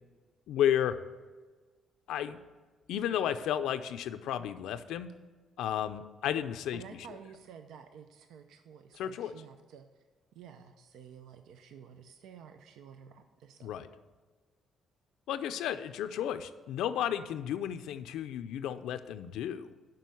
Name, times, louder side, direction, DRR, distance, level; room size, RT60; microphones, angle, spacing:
voice 1, 0.5-1.0 2.1-2.4 2.9-5.1 5.6-6.8 8.9-9.3 13.6-13.9 15.3-19.7, left 10 dB, 85° left, 10 dB, 0.5 m, -33 dB
voice 2, 6.7-9.9 10.3-13.7, right 7 dB, 80° right, 7 dB, 0.5 m, -51 dB
7.6 x 5.5 x 7.0 m, 1.4 s
cardioid pair, 125°, 0 cm